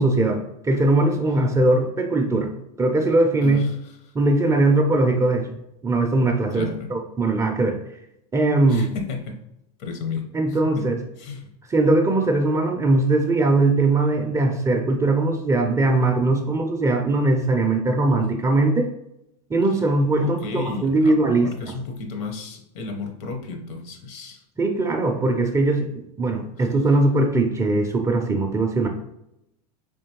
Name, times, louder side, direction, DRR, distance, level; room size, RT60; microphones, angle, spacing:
voice 1, 0.0-2.5 2.8-3.6 4.1-5.5 5.8-7.8 8.3-8.9 10.3-11.0 11.7-18.9 19.5-21.5 24.6-28.9, right 2 dB, 15° right, 3 dB, 0.4 m, -20 dB
voice 2, 3.4-3.9 6.5-6.9 8.7-9.4 9.8-10.9 11.2-11.5 20.2-24.4 26.6-26.7, left 4 dB, 60° left, 3 dB, 0.9 m, -33 dB
3.7 x 3.0 x 2.9 m, 0.83 s
hypercardioid pair, 100°, 21 cm